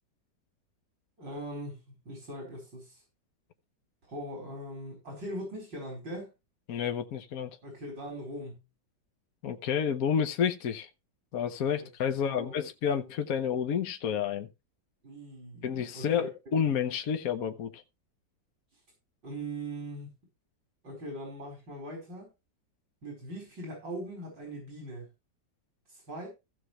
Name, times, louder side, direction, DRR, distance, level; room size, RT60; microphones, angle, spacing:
voice 1, 1.2-3.0 4.1-6.3 7.6-8.6 11.7-11.9 12.2-12.6 15.0-16.3 19.2-20.1 20.8-22.3 23.0-25.1 25.9-26.3, right 1 dB, 90° right, 5.4 m, -41 dB
voice 2, 6.7-7.6 9.4-10.9 11.3-14.5 15.6-17.8, left 8 dB, 60° left, 1.3 m, -30 dB
16.0 x 6.3 x 3.2 m
omnidirectional pair, 1.9 m